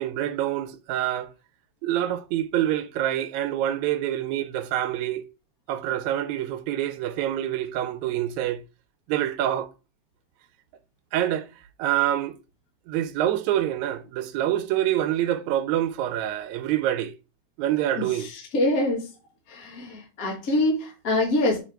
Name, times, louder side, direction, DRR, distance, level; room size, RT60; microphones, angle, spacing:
voice 1, 0.0-1.3 1.8-5.3 5.7-8.6 9.1-9.7 11.1-11.5 11.8-12.4 12.9-17.1 17.6-18.3, right 12 dB, 80° right, 1.9 m, -26 dB
voice 2, 18.0-19.1 19.5-21.6, left 1 dB, 40° left, 1.4 m, -25 dB
6.3 x 3.6 x 4.5 m
omnidirectional pair, 3.3 m